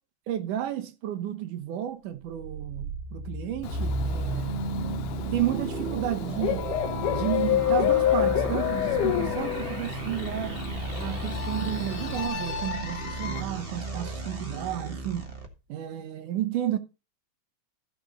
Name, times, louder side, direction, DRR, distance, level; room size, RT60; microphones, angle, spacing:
voice 1, 0.3-4.6 5.3-6.7 7.1-10.6 11.0-15.2 15.7-16.8, right 12 dB, 80° right, 2.6 m, -32 dB
sound 1, 2.2-15.5, right 3 dB, 45° right, 0.7 m, -34 dB
Bird / Cricket, 3.6-12.3, left 11 dB, 85° left, 2.4 m, -33 dB
sound 2, 6.6-9.9 11.0-13.4, left 11 dB, 65° left, 2.3 m, -29 dB
14.5 x 6.3 x 3.9 m
omnidirectional pair, 3.6 m